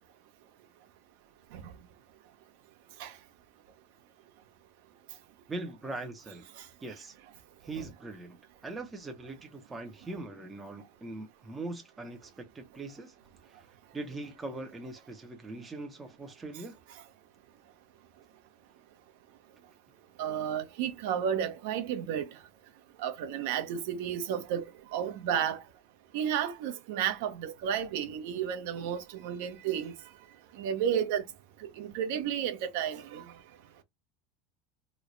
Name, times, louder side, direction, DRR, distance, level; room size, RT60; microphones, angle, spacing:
voice 1, 5.5-6.5 6.8-7.1 7.6-8.4 8.6-13.1 13.5-13.7 13.9-16.8, right 2 dB, 10° right, 0.6 m, -41 dB
voice 2, 20.2-22.3 23.0-24.6 24.9-25.6 26.1-29.9 30.6-31.2 31.8-33.2, right 9 dB, 65° right, 0.7 m, -32 dB
3.1 x 2.2 x 3.8 m
supercardioid pair, 175°, 0 cm